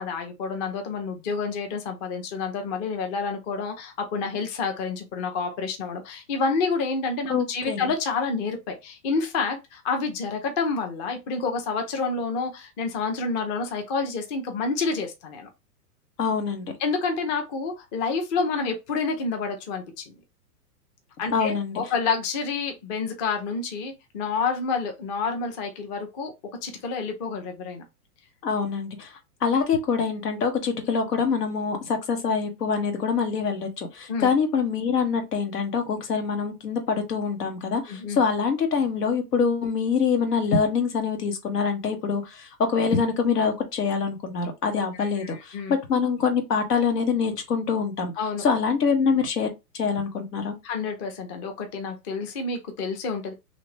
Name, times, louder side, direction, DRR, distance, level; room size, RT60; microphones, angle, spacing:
voice 1, 0.0-15.5 16.8-20.1 21.2-26.3 26.6-27.8 34.1-34.3 37.9-38.2 44.9-45.8 48.2-48.5 50.6-53.3, left 4 dB, 30° left, 0.6 m, -29 dB
voice 2, 7.3-7.9 16.2-16.7 21.3-21.8 28.4-29.1 29.4-48.1 48.4-49.5 49.7-50.5, left 5 dB, 85° left, 1.2 m, -25 dB
2.9 x 2.5 x 3.2 m
hypercardioid pair, 140°, 46 cm